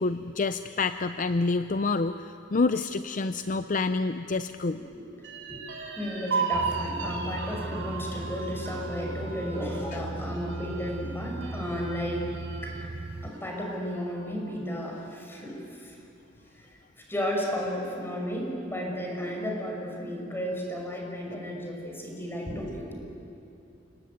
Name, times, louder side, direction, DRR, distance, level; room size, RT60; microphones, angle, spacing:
voice 1, 0.0-4.8, left 3 dB, 45° left, 11 dB, 0.5 m, -28 dB
sound 1, 5.2-12.9 13.3-13.4 13.8-14.5, right 5 dB, 75° right, 3.5 m, -36 dB
voice 2, 6.0-12.3 12.6-12.9 13.2-16.0 16.5-23.0, equal, 15° left, 0 dB, 5.6 m, -33 dB
sound 2, 6.5-13.3, right 2 dB, 30° right, 0.6 m, -38 dB
29.5 x 18.5 x 9.4 m, 2.7 s
head